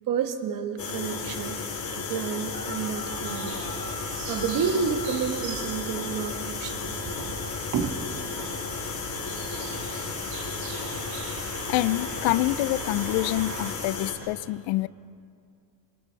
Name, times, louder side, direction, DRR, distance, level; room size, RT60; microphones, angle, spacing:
voice 1, 0.1-1.6 1.9-3.6 4.2-7.3 7.7-8.0, right 6 dB, 40° right, 6 dB, 1.6 m, -30 dB
sound 1, 0.8-14.1, left 4 dB, 40° left, 3.7 m, -34 dB
sound 2, 2.5-12.5, left 2 dB, 15° left, 3.8 m, -45 dB
sound 3, 3.1-13.7, right 5 dB, 80° right, 3.2 m, -41 dB
voice 2, 11.7-14.9, left 17 dB, 70° left, 18 dB, 0.6 m, -26 dB
27.0 x 24.0 x 4.7 m, 2.3 s
cardioid pair, 165°, 48 cm